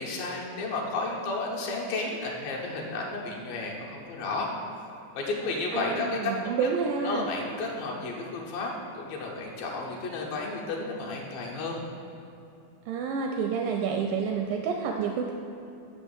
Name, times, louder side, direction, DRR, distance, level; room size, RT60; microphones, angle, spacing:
voice 1, 0.0-4.5 5.1-6.7 7.0-11.8, left 3 dB, 75° left, -2 dB, 2.8 m, -32 dB
voice 2, 5.7-7.3 12.9-15.3, right 6 dB, 85° right, 2 dB, 1.9 m, -29 dB
6.2 x 5.9 x 7.1 m, 2.7 s
omnidirectional pair, 4.3 m